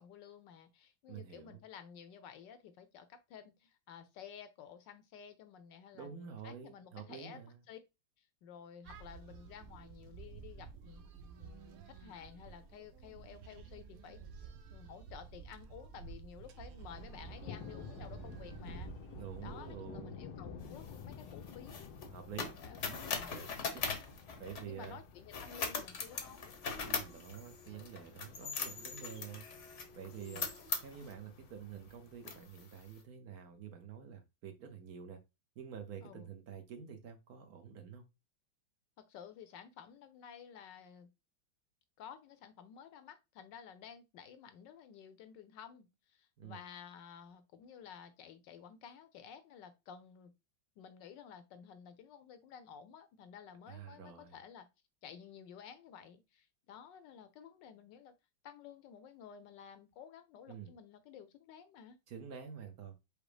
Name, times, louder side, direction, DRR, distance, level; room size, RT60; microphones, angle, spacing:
voice 1, 0.0-7.4 7.7-7.8 8.2-11.0 11.4-14.2 14.7-18.9 19.4-21.9 22.6-23.4 24.6-26.6 30.2-30.5 36.0-36.3 39.0-41.1 42.0-50.3 50.8-54.7 55.0-58.1 58.4-62.0, left 8 dB, 70° left, 1.2 m, -53 dB
voice 2, 1.1-1.6 5.9-7.6 19.2-20.3 22.1-22.5 22.8-23.0 23.2-24.0 24.4-25.0 26.8-29.5 29.9-30.5 30.8-35.2 35.6-38.0 46.4-46.6 53.7-54.3 60.5-60.7 62.1-62.9, right 7 dB, 60° right, 1.0 m, -48 dB
sound 1, 8.8-19.7, right 5 dB, 85° right, 0.7 m, -51 dB
Thunder, 16.7-32.7, left 6 dB, 85° left, 1.6 m, -52 dB
sound 2, 20.6-24.9 25.3-31.2 31.7-31.9 32.2-32.9, left 5 dB, 50° left, 0.9 m, -41 dB
5.0 x 2.1 x 4.8 m
omnidirectional pair, 2.2 m